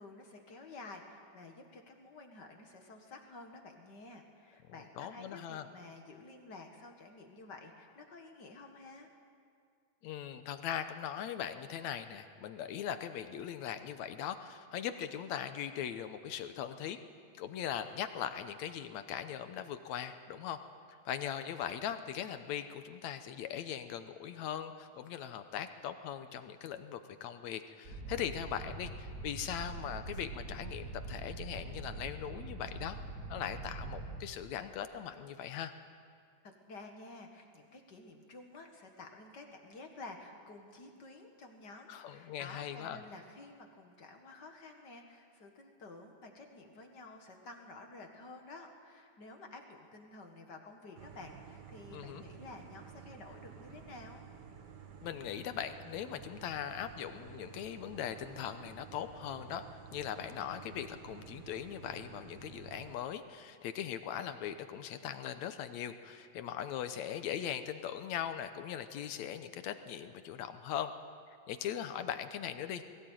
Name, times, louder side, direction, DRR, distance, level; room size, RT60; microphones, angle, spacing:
voice 1, 0.0-9.1 36.4-54.3, left 3 dB, 40° left, 3 dB, 1.8 m, -51 dB
voice 2, 5.0-5.7 10.0-17.0 17.4-20.6 21.1-33.0 33.3-35.7 41.9-43.0 51.9-52.2 55.0-59.7 59.9-70.9 71.5-72.8, left 9 dB, 70° left, 9 dB, 1.9 m, -40 dB
sound 1, 27.8-34.2, right 3 dB, 35° right, 2.3 m, -43 dB
sound 2, 51.0-63.0, right 7 dB, 90° right, 0.9 m, -52 dB
21.5 x 17.0 x 9.1 m, 2.2 s
omnidirectional pair, 3.7 m